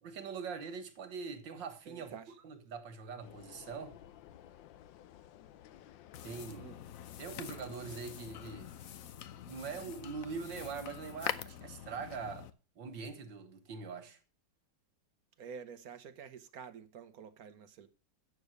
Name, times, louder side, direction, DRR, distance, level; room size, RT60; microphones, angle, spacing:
voice 1, 0.0-2.1 2.4-4.0 6.2-6.7 7.2-8.7 9.5-12.5 12.8-14.2, right 5 dB, 85° right, 2.2 m, -43 dB
voice 2, 1.8-2.4 6.6-6.8 15.4-17.9, right 6 dB, 60° right, 1.3 m, -49 dB
sound 1, 3.2-8.6, left 11 dB, 85° left, 1.4 m, -56 dB
sound 2, 6.1-12.5, left 10 dB, 60° left, 1.0 m, -44 dB
9.4 x 6.8 x 6.5 m
omnidirectional pair, 2.0 m